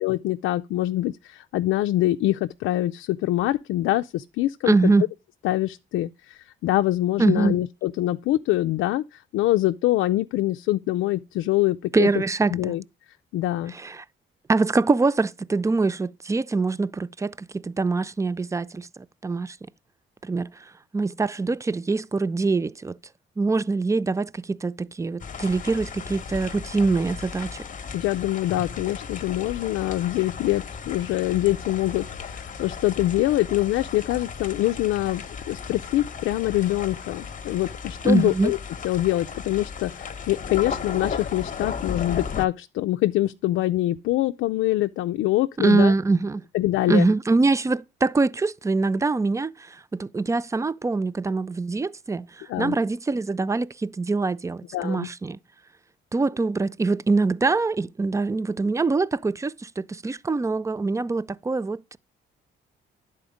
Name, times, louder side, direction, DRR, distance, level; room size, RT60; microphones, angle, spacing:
voice 1, 0.0-4.9 5.4-12.1 12.5-12.8 13.3-13.7 27.9-38.6 38.8-45.9 46.5-47.1 52.5-52.8 54.7-55.1, left 15 dB, 85° left, 0.4 m, -24 dB
voice 2, 4.7-5.0 7.2-7.6 11.9-12.7 13.8-14.0 14.5-18.9 19.2-19.6 20.2-20.5 20.9-23.0 23.4-27.5 38.0-38.5 45.6-46.4 46.9-55.4 56.1-62.0, right 3 dB, 15° right, 0.4 m, -24 dB
sound 1, 25.2-42.5, left 6 dB, 40° left, 0.9 m, -35 dB
10.5 x 4.3 x 4.9 m
cardioid pair, 90°, 20 cm